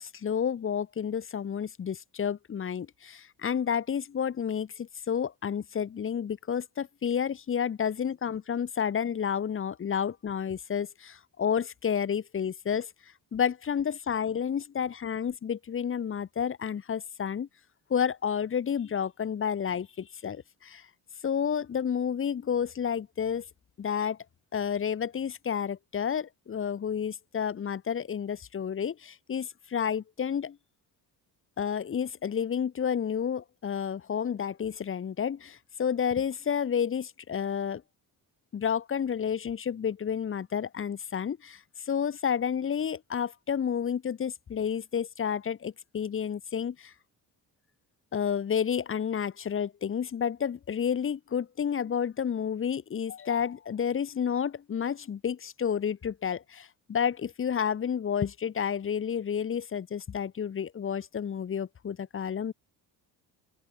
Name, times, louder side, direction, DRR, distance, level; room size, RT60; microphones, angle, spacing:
voice 1, 0.0-12.9 13.3-17.5 17.9-20.8 21.2-23.5 23.8-24.2 24.5-30.6 31.6-37.8 38.5-46.9 48.1-62.5, left 7 dB, 35° left, 0.9 m, -30 dB
open air
cardioid pair, 105°, 39 cm